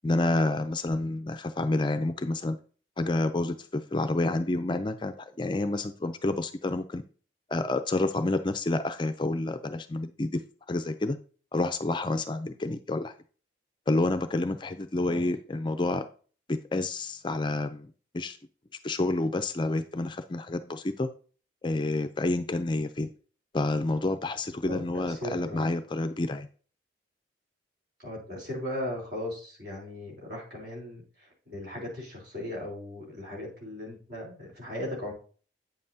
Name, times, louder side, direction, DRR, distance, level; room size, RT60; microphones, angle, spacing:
voice 1, 0.0-2.6 3.0-7.0 7.5-10.4 10.7-11.2 11.5-13.1 13.9-16.0 16.5-18.4 18.8-21.1 21.6-23.1 23.5-26.5, left 2 dB, 25° left, 9 dB, 0.4 m, -29 dB
voice 2, 25.1-25.7 28.0-35.1, left 1 dB, 55° right, -2 dB, 3.8 m, -37 dB
8.9 x 7.5 x 2.7 m, 0.40 s
head